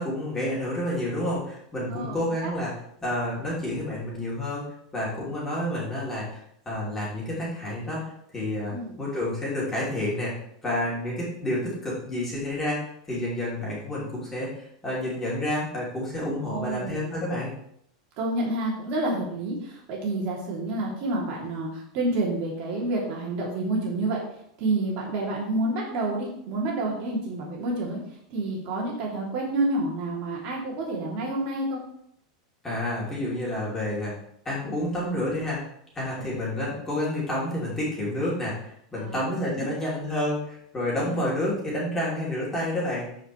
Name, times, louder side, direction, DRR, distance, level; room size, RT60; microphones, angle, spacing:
voice 1, 0.0-2.7 3.0-4.6 4.9-6.4 6.6-10.3 10.6-17.5 32.6-34.1 34.4-35.7 35.9-43.1, left 1 dB, 10° left, -6 dB, 3.1 m, -29 dB
voice 2, 16.4-17.0 18.2-24.2 24.6-28.0 28.3-31.8 36.1-36.3 38.9-39.2 39.6-39.9 41.0-41.2, right 2 dB, 45° right, -3 dB, 2.8 m, -29 dB
13.5 x 5.1 x 3.2 m, 0.70 s
supercardioid pair, 160°, 3 cm